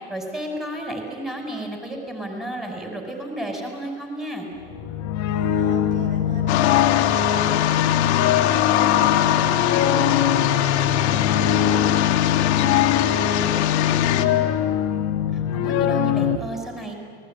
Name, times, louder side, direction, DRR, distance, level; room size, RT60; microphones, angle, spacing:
voice 1, 0.1-4.5 15.5-16.9, right 1 dB, ahead, 2 dB, 5.5 m, -32 dB
sound 1, 4.6-16.4, left 10 dB, 45° left, 1.8 m, -22 dB
voice 2, 5.3-14.6, right 3 dB, 80° right, 4 dB, 6.2 m, -38 dB
sound 2, 6.5-14.3, left 13 dB, 75° left, 2.2 m, -22 dB
30.0 x 20.0 x 10.0 m, 2.1 s
hypercardioid pair, 100°, 34 cm